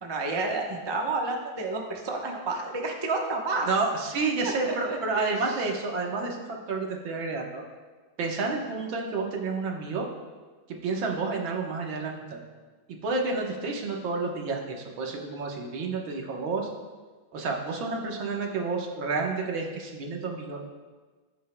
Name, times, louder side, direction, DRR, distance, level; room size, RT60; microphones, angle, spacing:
voice 1, 0.0-3.7 4.4-5.4, right 3 dB, 30° right, 0 dB, 0.5 m, -30 dB
voice 2, 3.7-6.4 6.7-7.6 8.2-10.1 10.7-12.4 13.0-16.7 17.3-20.6, right 3 dB, 75° right, 0 dB, 2.0 m, -30 dB
14.5 x 9.2 x 2.3 m, 1.4 s
omnidirectional pair, 2.2 m